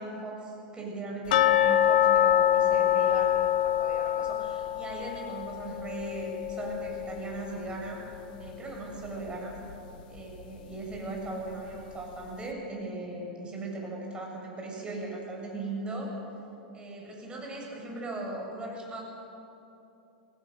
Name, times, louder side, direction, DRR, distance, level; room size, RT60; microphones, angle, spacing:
voice 1, 0.0-8.0 8.4-9.5 10.1-16.1 16.7-19.0, right 2 dB, 20° right, -1 dB, 7.4 m, -38 dB
sound 1, 1.3-8.2 8.4-8.5 9.1-9.2 9.7-9.8, left 11 dB, 60° left, 1.0 m, -26 dB
28.0 x 19.0 x 6.7 m, 2.9 s
hypercardioid pair, 95°, 5 cm